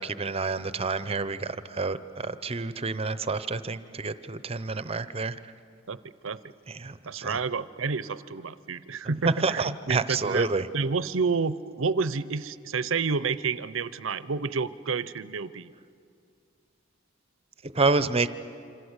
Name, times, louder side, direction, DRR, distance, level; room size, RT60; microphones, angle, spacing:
voice 1, 0.0-5.3 6.8-7.3 9.4-10.6 17.8-18.3, right 3 dB, 30° right, 13 dB, 0.8 m, -28 dB
voice 2, 5.9-6.4 7.1-15.7, right 4 dB, 70° right, 16 dB, 0.7 m, -30 dB
27.0 x 26.0 x 8.1 m, 2.4 s
head